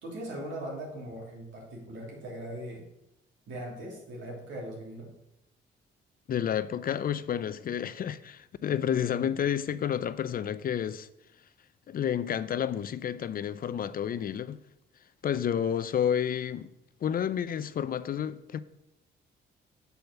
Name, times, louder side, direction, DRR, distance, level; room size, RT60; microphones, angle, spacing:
voice 1, 0.0-2.8 3.5-5.1, right 1 dB, 75° right, 3.2 m, -40 dB
voice 2, 6.3-11.1 11.9-14.6 15.2-16.7 17.0-18.6, left 9 dB, 45° left, 0.4 m, -30 dB
7.0 x 4.5 x 6.9 m
cardioid pair, 90°, 20 cm